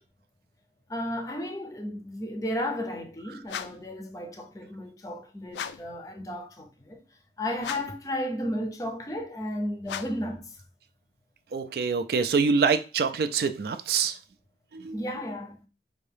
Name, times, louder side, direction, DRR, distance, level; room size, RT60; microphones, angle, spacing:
voice 1, 0.9-10.6 14.9-15.7, left 1 dB, 20° left, 0.5 m, -34 dB
sound 1, 3.5-3.9 5.5-6.0 7.6-8.1 9.8-10.3, left 8 dB, 80° left, 0.3 m, -37 dB
voice 2, 11.5-14.2 14.7-15.0, right 5 dB, 60° right, 0.3 m, -25 dB
4.5 x 2.6 x 3.3 m
head